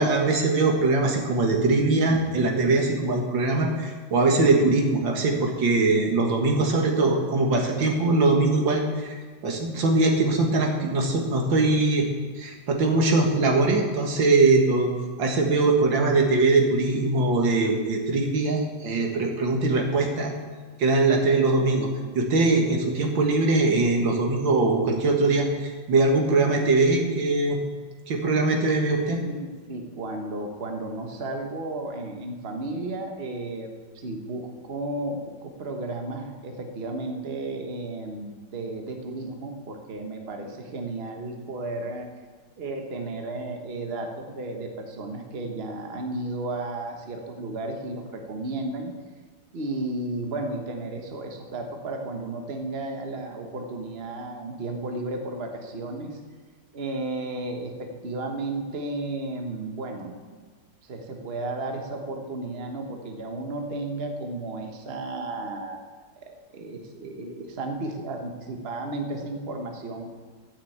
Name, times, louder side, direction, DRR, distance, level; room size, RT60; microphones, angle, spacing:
voice 1, 0.0-9.1 9.4-12.1 12.4-14.9 15.2-20.3 20.8-21.9 22.2-27.6 28.1-29.2, right 3 dB, 90° right, 1 dB, 2.4 m, -22 dB
voice 2, 29.1-42.1 42.6-48.9 49.5-56.2 56.7-60.4 60.8-65.8 66.2-70.1, right 2 dB, 35° right, 3 dB, 1.3 m, -33 dB
13.0 x 6.5 x 8.6 m, 1.5 s
omnidirectional pair, 2.0 m